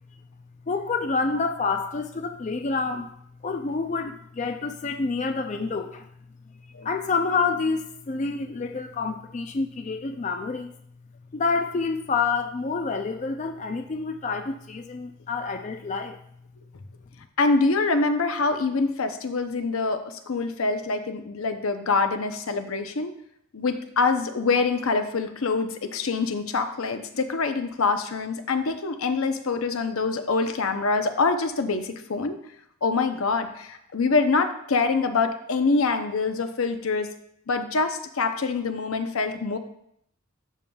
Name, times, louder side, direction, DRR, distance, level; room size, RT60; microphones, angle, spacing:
voice 1, 0.7-3.1 3.4-6.1 6.8-10.7 11.3-16.2, left 4 dB, 35° left, 5 dB, 0.4 m, -28 dB
voice 2, 17.4-23.1 23.5-32.3 32.8-37.1 37.5-39.6, left 4 dB, 85° left, 7 dB, 0.7 m, -25 dB
12.0 x 5.4 x 2.3 m, 0.71 s
head